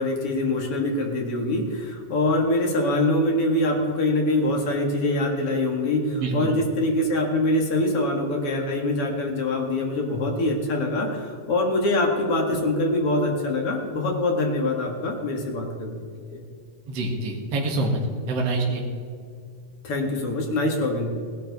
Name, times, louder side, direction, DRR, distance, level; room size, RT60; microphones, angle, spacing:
voice 1, 0.0-16.0 16.3-16.4 19.8-21.1, left 2 dB, 50° left, 1 dB, 2.4 m, -24 dB
voice 2, 6.1-6.5 16.9-18.0 18.3-18.8, right 2 dB, 50° right, -1 dB, 2.7 m, -26 dB
17.5 x 11.5 x 4.1 m, 2.2 s
omnidirectional pair, 3.8 m